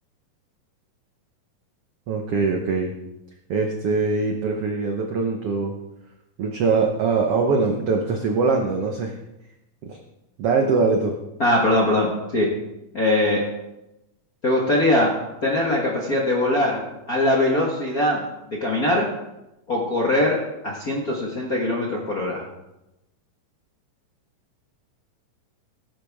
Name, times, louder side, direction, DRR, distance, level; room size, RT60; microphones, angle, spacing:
voice 1, 2.1-2.9 3.5-5.7 6.4-9.1 9.8-10.0 10.4-11.1, right 4 dB, 75° right, 3 dB, 1.4 m, -22 dB
voice 2, 11.4-12.5 12.9-13.4 14.4-15.2 15.4-16.8 17.1-18.2 18.5-19.1 19.7-22.5, left 1 dB, 45° left, -3 dB, 1.1 m, -21 dB
18.0 x 9.8 x 3.5 m, 0.94 s
omnidirectional pair, 4.0 m